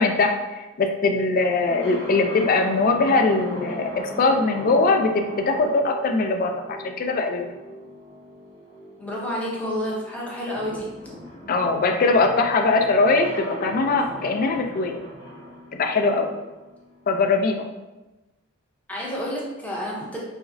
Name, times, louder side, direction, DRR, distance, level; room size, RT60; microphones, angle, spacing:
voice 1, 0.0-7.5 11.5-15.0 15.8-16.3 17.1-17.7, left 3 dB, 45° left, 4 dB, 0.3 m, -21 dB
sound 1, 1.6-17.4, equal, 65° left, 1.4 m, -39 dB
voice 2, 9.0-10.9 18.9-20.2, equal, 5° left, -5 dB, 0.7 m, -29 dB
4.8 x 2.0 x 2.6 m, 1.1 s
head